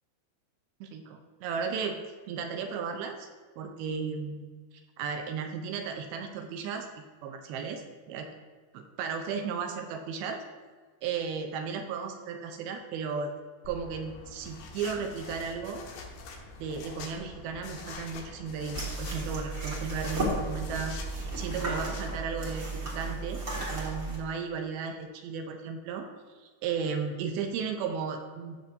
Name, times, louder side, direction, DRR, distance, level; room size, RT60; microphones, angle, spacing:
voice 1, 0.8-2.0 2.3-3.3 3.6-4.5 5.0-6.9 7.2-8.3 8.7-10.4 11.0-13.3 13.7-15.9 16.6-26.1 26.4-28.7, right 6 dB, 85° right, 5 dB, 2.5 m, -35 dB
sound 1, 13.6-22.2, left 4 dB, 90° left, 3.3 m, -44 dB
sound 2, 18.7-24.2, right 2 dB, 55° right, 0.9 m, -34 dB
15.5 x 5.9 x 2.6 m, 1.4 s
omnidirectional pair, 4.6 m